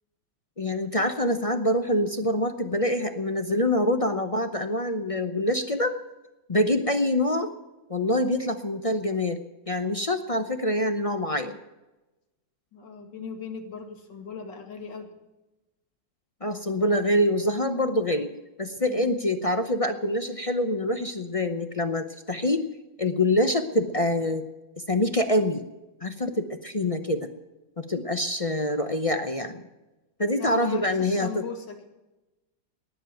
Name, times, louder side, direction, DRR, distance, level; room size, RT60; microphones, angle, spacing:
voice 1, 0.6-5.9 6.5-7.5 7.9-9.4 9.7-11.6 16.4-18.3 18.6-22.6 23.0-24.4 24.9-25.6 26.0-27.3 27.8-29.6 30.2-31.4, left 1 dB, 40° left, 8 dB, 0.5 m, -25 dB
voice 2, 12.7-15.1 18.8-19.2 30.4-31.8, left 5 dB, 75° left, 4 dB, 2.8 m, -39 dB
19.0 x 7.4 x 9.1 m, 1.0 s
omnidirectional pair, 2.0 m